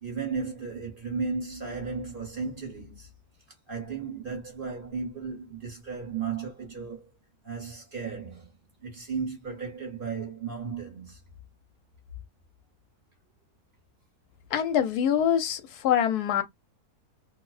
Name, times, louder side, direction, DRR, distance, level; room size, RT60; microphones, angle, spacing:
voice 1, 0.0-3.1 3.7-7.1 7.4-8.5 8.8-11.2, right 5 dB, 40° right, 1.0 m, -35 dB
voice 2, 14.5-16.4, left 9 dB, 80° left, 1.1 m, -24 dB
2.7 x 2.1 x 2.3 m
omnidirectional pair, 1.7 m